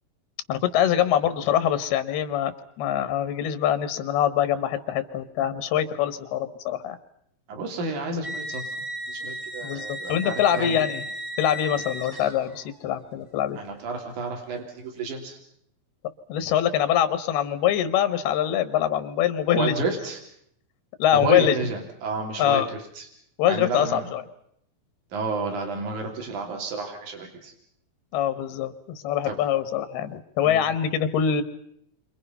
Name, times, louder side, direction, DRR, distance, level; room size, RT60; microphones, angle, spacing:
voice 1, 0.5-7.0 9.6-11.0 11.4-13.6 16.3-19.7 21.0-21.7 22.4-22.7 23.4-24.2 28.1-31.4, left 10 dB, 85° left, 11 dB, 3.4 m, -24 dB
voice 2, 7.5-8.6 9.1-10.8 13.6-15.4 19.5-20.2 21.1-23.1 23.5-24.1 25.1-27.5 29.2-29.4 30.4-30.6, right 3 dB, 55° right, 2 dB, 5.0 m, -31 dB
sound 1, 8.2-12.7, equal, 20° right, 0.6 m, -35 dB
29.5 x 26.0 x 5.6 m, 0.71 s
omnidirectional pair, 4.4 m